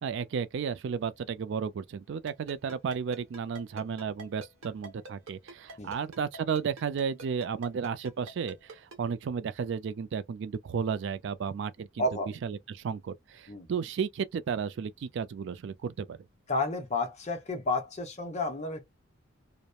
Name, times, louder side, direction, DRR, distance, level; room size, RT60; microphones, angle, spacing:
voice 1, 0.0-12.0 12.4-16.2, right 6 dB, 60° right, 0.3 m, -33 dB
Ringtone, 2.3-9.0, right 1 dB, 75° right, 0.9 m, -45 dB
voice 2, 12.0-12.3 13.5-13.7 16.5-18.8, left 2 dB, 35° left, 0.7 m, -31 dB
2.9 x 2.1 x 2.2 m
head